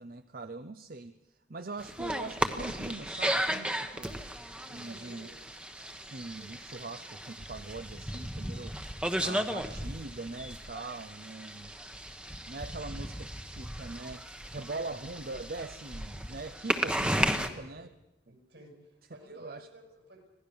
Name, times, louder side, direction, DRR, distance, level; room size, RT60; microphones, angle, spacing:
voice 1, 0.0-4.2 4.7-5.3 6.1-11.7 12.5-17.9 18.3-18.4 19.3-19.7, right 3 dB, 50° right, 10 dB, 0.7 m, -42 dB
sound 1, 1.8-17.5, right 1 dB, 5° right, 1.1 m, -35 dB
voice 2, 4.6-5.4 17.2-17.8 18.3-20.3, right 1 dB, 75° right, 2 dB, 7.2 m, -53 dB
25.5 x 18.0 x 7.0 m, 0.96 s
head